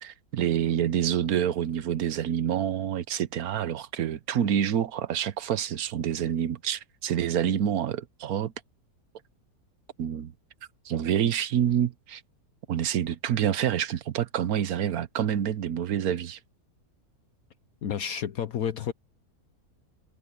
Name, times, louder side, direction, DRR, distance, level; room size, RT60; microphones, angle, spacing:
voice 1, 0.0-8.5 10.0-10.3 10.8-12.2 12.7-16.4, right 9 dB, 70° right, 1.3 m, -27 dB
voice 2, 17.8-18.9, left 8 dB, 65° left, 1.3 m, -30 dB
omnidirectional pair, 1.7 m